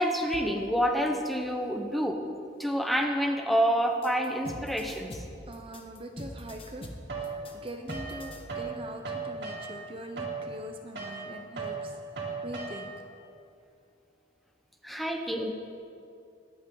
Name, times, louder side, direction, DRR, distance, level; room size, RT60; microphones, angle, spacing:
voice 1, 0.0-2.2 2.6-5.1 14.8-15.5, equal, ahead, 3 dB, 1.0 m, -28 dB
sound 1, 4.0-8.4, left 1 dB, 30° left, 1.3 m, -43 dB
voice 2, 5.5-12.0 12.4-12.9, right 1 dB, 30° right, 4 dB, 0.7 m, -43 dB
sound 2, 7.1-8.7 9.0-13.1, right 4 dB, 65° right, 2.7 m, -37 dB
23.0 x 8.7 x 3.8 m, 2.5 s
head